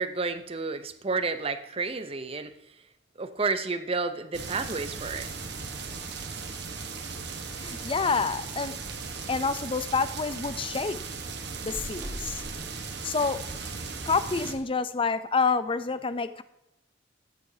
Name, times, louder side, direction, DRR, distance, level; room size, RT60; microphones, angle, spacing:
voice 1, 0.0-2.5 3.2-5.3 5.6-5.7, right 4 dB, 30° right, 10 dB, 0.7 m, -31 dB
sound 1, 4.3-14.5, right 4 dB, 60° right, 1.3 m, -37 dB
voice 2, 7.6-8.7 9.3-11.0 11.6-12.4 13.0-13.4 14.1-16.4, left 4 dB, 25° left, 13 dB, 0.5 m, -28 dB
sound 2, 10.7-10.8 11.1-13.3, equal, 5° right, 4.1 m, -43 dB
14.0 x 9.6 x 2.8 m, 0.84 s
head